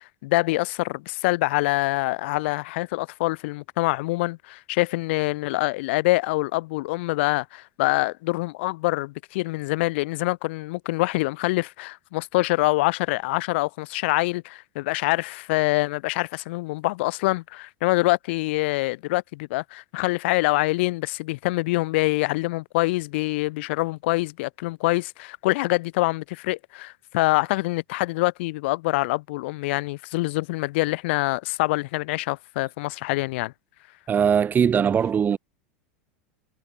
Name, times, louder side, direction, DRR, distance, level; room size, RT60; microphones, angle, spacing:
voice 1, 0.0-33.5, left 21 dB, 65° left, 5.0 m, -25 dB
voice 2, 34.1-35.4, right 7 dB, 25° right, 2.1 m, -20 dB
hypercardioid pair, 105°, 7 cm